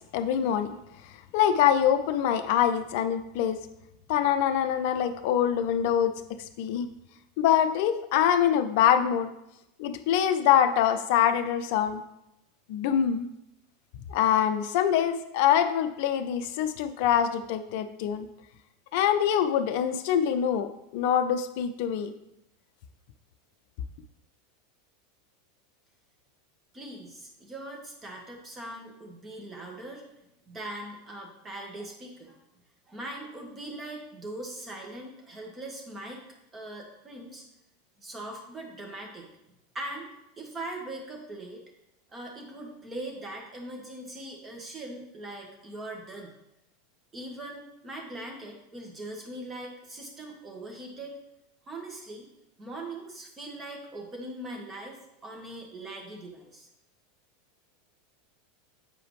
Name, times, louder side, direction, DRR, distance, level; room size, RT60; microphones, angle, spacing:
voice 1, 0.1-0.8 1.3-3.6 4.1-6.1 6.6-6.9 7.4-9.3 9.8-12.0 12.7-13.3 14.1-18.3 18.9-22.1, left 9 dB, 60° left, 10 dB, 0.6 m, -24 dB
voice 2, 26.7-30.0 30.5-32.4 32.9-36.2 36.5-37.4 38.0-39.3 39.7-40.1 40.4-41.6 42.1-46.4 47.1-51.2 51.7-52.3 52.6-55.0 55.2-56.7, right 1 dB, 20° right, 1 dB, 1.8 m, -41 dB
8.3 x 4.8 x 3.2 m, 0.85 s
figure-of-eight pair, 85°, 0 cm